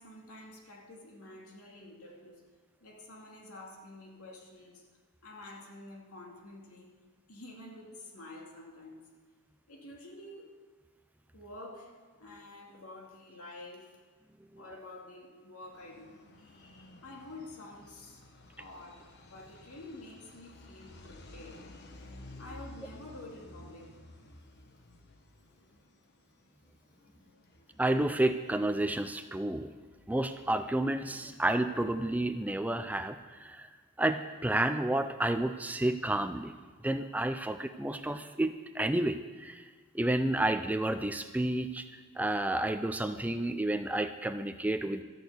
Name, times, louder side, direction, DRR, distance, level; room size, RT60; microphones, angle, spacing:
voice 1, 0.0-2.5 2.8-4.9 5.2-7.0 7.3-9.1 9.7-10.5 11.3-14.0 14.6-18.3 18.6-21.7 22.4-24.0 27.0-27.2, left 2 dB, 85° left, 0 dB, 2.4 m, -49 dB
sound 1, 15.7-33.2, left 1 dB, 50° left, 1.1 m, -54 dB
voice 2, 27.8-29.7 30.1-33.7 34.0-36.5 36.8-39.6 39.9-41.8 42.2-45.0, right 1 dB, 5° right, 9 dB, 0.4 m, -30 dB
13.0 x 6.6 x 8.0 m, 1.5 s
head